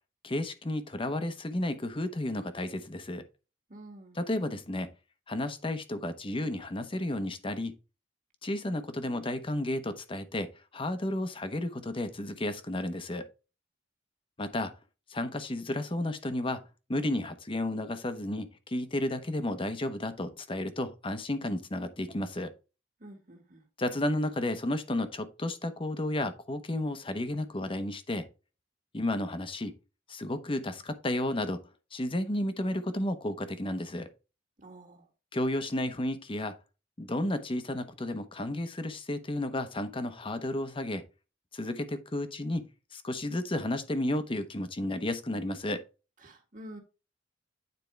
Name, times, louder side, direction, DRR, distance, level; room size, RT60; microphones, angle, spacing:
voice 1, 0.2-3.2 4.1-4.9 5.3-7.7 8.4-13.3 14.4-14.7 15.1-16.6 16.9-22.5 23.8-28.3 28.9-29.7 30.1-34.1 35.3-36.5 37.0-41.0 41.5-42.7 42.9-45.8, left 1 dB, 30° left, 0.9 m, -32 dB
voice 2, 3.7-4.2 23.0-23.6 34.6-35.0 46.2-46.8, right 1 dB, 45° right, 1.9 m, -48 dB
9.4 x 4.4 x 3.3 m
head